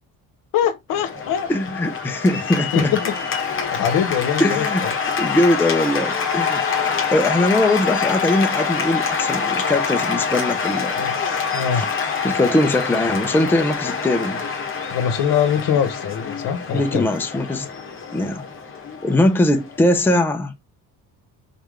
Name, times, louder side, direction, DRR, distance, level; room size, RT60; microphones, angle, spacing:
voice 1, 0.5-1.5 2.7-3.1 3.7-4.9 11.0-11.8 14.9-17.1, left 8 dB, 65° left, 1.1 m, -23 dB
Cheering / Applause, 0.9-20.2, left 5 dB, 35° left, 1.3 m, -25 dB
voice 2, 1.5-2.9 4.4-4.9 5.2-11.0 11.7-11.8 12.2-14.4 16.7-17.7 18.1-18.4 19.0-20.5, left 1 dB, 5° left, 0.6 m, -21 dB
4.2 x 3.5 x 3.6 m
cardioid pair, 140°, 36 cm